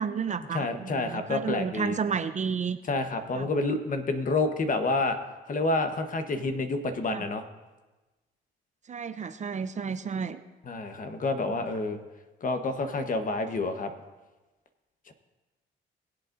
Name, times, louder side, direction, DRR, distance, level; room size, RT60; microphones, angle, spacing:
voice 1, 0.0-2.8 3.3-3.5 7.1-7.3 8.9-10.4, right 6 dB, 35° right, 11 dB, 0.6 m, -31 dB
voice 2, 0.5-2.0 2.9-5.2 5.5-7.4 10.6-12.0 12.4-13.9 15.1-15.2, left 3 dB, 40° left, 7 dB, 1.1 m, -28 dB
21.0 x 8.1 x 2.6 m, 1.2 s
cardioid pair, 90°, 20 cm